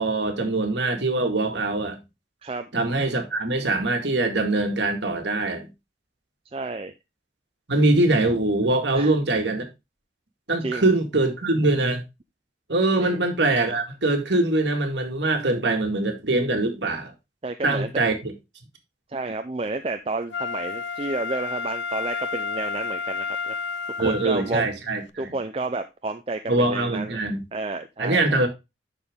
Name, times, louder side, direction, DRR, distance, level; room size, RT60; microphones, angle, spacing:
voice 1, 0.0-2.0 2.7-5.7 7.7-9.7 10.5-12.0 12.7-17.1 17.6-18.3 24.0-25.3 26.5-27.4 28.0-28.5, right 2 dB, 75° right, 1.9 m, -23 dB
voice 2, 6.5-6.9 8.9-9.1 10.6-10.9 13.0-13.2 17.4-17.9 19.1-23.6 24.0-24.7 25.2-27.2 27.5-28.4, right 3 dB, 30° right, 0.5 m, -31 dB
Wind instrument woodwind instrument, 20.3-24.6 25.1-25.2, left 5 dB, 85° left, 0.7 m, -31 dB
11.5 x 4.2 x 3.6 m
head